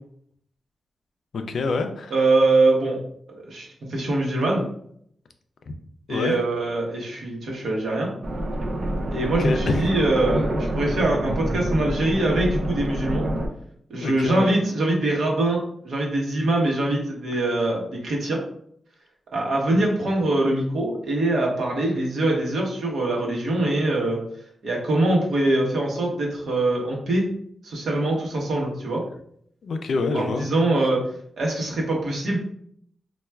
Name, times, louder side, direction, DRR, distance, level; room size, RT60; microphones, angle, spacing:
voice 1, 1.3-2.1 6.1-6.4 9.4-9.8 14.0-14.5 29.6-30.5, left 3 dB, 65° left, 7 dB, 0.3 m, -26 dB
voice 2, 2.1-3.0 3.3-4.7 6.1-8.1 9.1-10.5 10.8-13.3 13.9-18.4 19.3-24.2 24.6-27.3 27.6-29.0 30.1-31.1 31.4-32.4, right 2 dB, 80° right, -2 dB, 0.9 m, -23 dB
sound 1, 8.2-13.5, right 1 dB, 45° right, 0.4 m, -27 dB
4.2 x 2.3 x 2.2 m, 0.68 s
wide cardioid pair, 175°, 0 cm